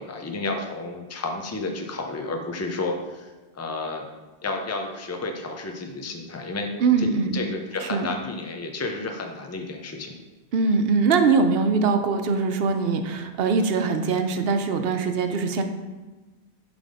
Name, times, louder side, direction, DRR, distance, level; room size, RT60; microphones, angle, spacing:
voice 1, 0.0-4.1 4.4-6.7 7.0-10.1, left 3 dB, 20° left, 3 dB, 0.6 m, -31 dB
voice 2, 6.8-7.4 7.9-8.1 10.5-15.6, right 4 dB, 70° right, 7 dB, 0.9 m, -22 dB
7.5 x 3.5 x 5.3 m, 1.2 s
omnidirectional pair, 1.1 m